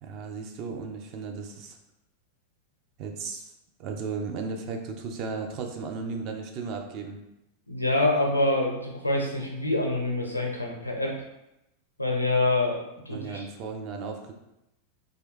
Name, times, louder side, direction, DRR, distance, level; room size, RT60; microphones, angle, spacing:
voice 1, 0.0-1.8 3.0-3.5 3.8-7.2 13.1-14.3, right 4 dB, 40° right, 3 dB, 0.4 m, -35 dB
voice 2, 7.7-11.1 12.0-13.5, left 2 dB, 85° left, 0 dB, 0.5 m, -26 dB
2.6 x 2.2 x 3.5 m, 0.90 s
figure-of-eight pair, 90°, 0 cm